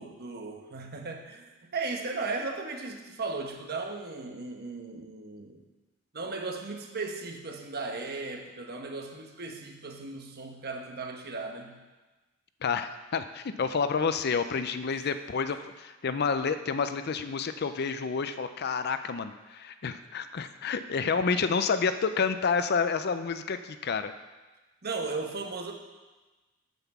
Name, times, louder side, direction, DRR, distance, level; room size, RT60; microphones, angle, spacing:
voice 1, 0.0-5.6 6.1-11.8 24.8-25.7, right 3 dB, 50° right, 3 dB, 1.2 m, -36 dB
voice 2, 12.6-24.1, left 5 dB, 50° left, 10 dB, 0.5 m, -29 dB
9.1 x 5.9 x 7.2 m, 1.2 s
head